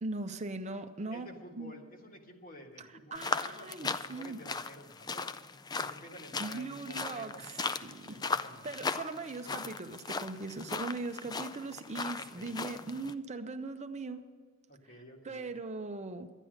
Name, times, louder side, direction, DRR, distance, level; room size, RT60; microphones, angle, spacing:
voice 1, 0.0-1.3 1.5-1.7 2.8-4.4 6.4-7.5 7.8-8.2 8.6-14.3 15.2-16.3, right 3 dB, 35° right, 8 dB, 0.6 m, -40 dB
voice 2, 1.1-5.3 5.7-7.4 8.1-8.7 12.2-12.7 14.7-15.6, left 1 dB, 45° left, 2 dB, 1.7 m, -51 dB
sound 1, 3.1-13.1, left 4 dB, 20° left, 0.4 m, -38 dB
12.0 x 9.9 x 6.4 m, 1.5 s
head